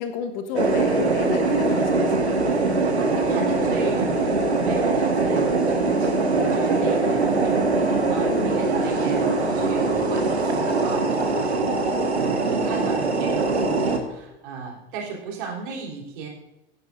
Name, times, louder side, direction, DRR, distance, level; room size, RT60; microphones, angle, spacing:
voice 1, 0.0-2.4 8.3-8.7, left 6 dB, 45° left, 7 dB, 1.4 m, -32 dB
sound 1, 0.5-14.0, right 3 dB, 80° right, 1.6 m, -22 dB
voice 2, 2.7-4.1 4.6-16.3, right 5 dB, 50° right, -1 dB, 3.8 m, -35 dB
17.0 x 9.9 x 2.6 m, 0.92 s
figure-of-eight pair, 85°, 32 cm